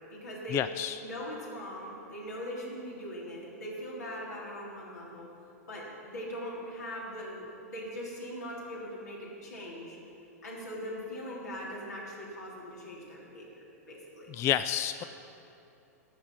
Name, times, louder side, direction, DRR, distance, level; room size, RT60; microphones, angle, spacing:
voice 1, 0.0-0.6 1.0-5.3 5.7-10.0 10.4-14.3, equal, 80° left, -4 dB, 3.4 m, -41 dB
voice 2, 0.5-1.0 14.3-15.0, left 11 dB, 30° left, 12 dB, 0.3 m, -29 dB
11.5 x 7.0 x 8.8 m, 2.8 s
hypercardioid pair, 100°, 9 cm